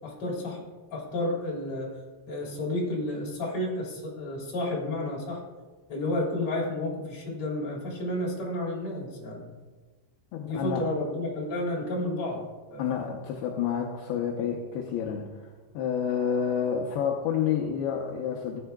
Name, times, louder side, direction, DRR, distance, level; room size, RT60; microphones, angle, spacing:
voice 1, 0.0-0.6 0.9-2.0 2.3-5.4 5.9-9.5 10.4-12.9, left 1 dB, 35° left, -4 dB, 3.4 m, -31 dB
voice 2, 10.3-10.9 12.8-15.3 15.7-18.6, left 8 dB, 80° left, 0 dB, 2.4 m, -29 dB
17.5 x 9.3 x 2.3 m, 1.3 s
omnidirectional pair, 5.5 m